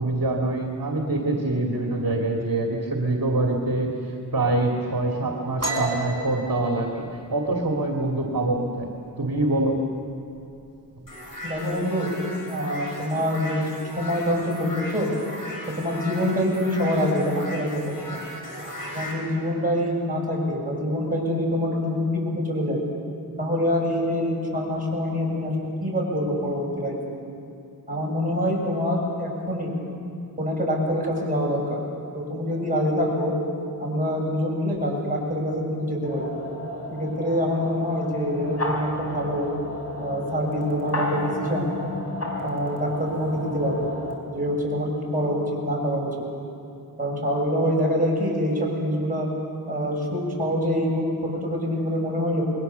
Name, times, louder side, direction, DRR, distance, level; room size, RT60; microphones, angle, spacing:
voice 1, 0.0-4.0 4.3-8.9 9.2-9.8, right 2 dB, 65° right, 0 dB, 2.5 m, -25 dB
sound 1, 5.6-9.0 9.4-9.7 10.1-10.6 10.9-11.6, right 2 dB, 40° right, 4.6 m, -32 dB
sound 2, 11.1-19.1, left 1 dB, 60° left, 6.2 m, -37 dB
voice 2, 11.4-12.1 12.5-13.7 14.0-15.1 15.7-17.7 18.1-18.3 18.9-22.8 23.4-25.5 25.8-27.0 27.9-29.7 30.4-31.8 32.1-33.3 33.8-36.3 36.9-39.5 40.0-41.7 42.4-43.9 44.3-46.1 47.0-49.3 49.7-52.4, equal, 20° right, -3 dB, 6.9 m, -25 dB
sound 3, 36.0-44.2, left 1 dB, 40° left, 4.6 m, -33 dB
28.0 x 22.0 x 6.9 m, 2.7 s
wide cardioid pair, 100°, 38 cm